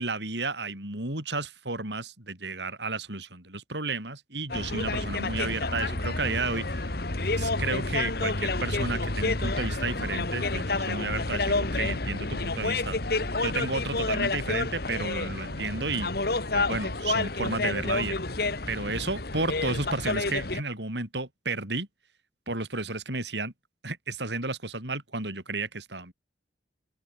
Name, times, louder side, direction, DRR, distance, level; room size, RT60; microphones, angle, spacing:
voice 1, 0.0-6.9 7.4-13.0 13.4-16.1 16.5-18.2 18.7-21.9 22.5-23.5 23.8-26.1, right 3 dB, 75° right, 6.9 m, -32 dB
sound 1, 4.5-20.6, left 3 dB, 55° left, 1.9 m, -29 dB
open air
head